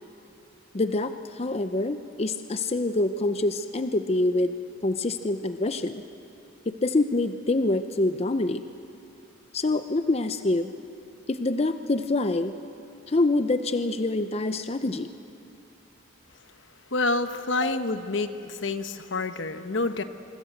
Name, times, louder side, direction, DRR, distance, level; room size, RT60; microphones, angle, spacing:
voice 1, 0.7-4.5 4.8-6.0 6.7-8.6 9.5-10.7 11.3-12.5 13.1-15.1 17.6-17.8, left 2 dB, 30° left, 10 dB, 0.6 m, -26 dB
voice 2, 16.9-20.0, left 3 dB, 70° left, 10 dB, 1.1 m, -28 dB
26.0 x 23.5 x 7.8 m, 2.7 s
head